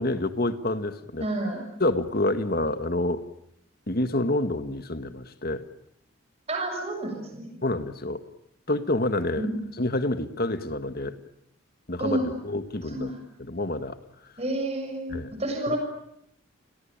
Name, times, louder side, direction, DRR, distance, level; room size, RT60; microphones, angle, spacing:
voice 1, 0.0-1.3 1.8-3.2 3.9-5.6 7.6-8.2 8.7-9.5 9.8-11.2 11.9-13.1 13.4-14.0 15.1-15.4 15.7-15.8, left 1 dB, 45° left, 10 dB, 1.8 m, -28 dB
voice 2, 1.2-1.6 6.5-7.6 9.4-9.6 12.0-12.2 12.9-13.2 14.4-15.8, right 1 dB, 30° right, 3 dB, 6.8 m, -30 dB
30.0 x 22.5 x 8.9 m, 0.75 s
head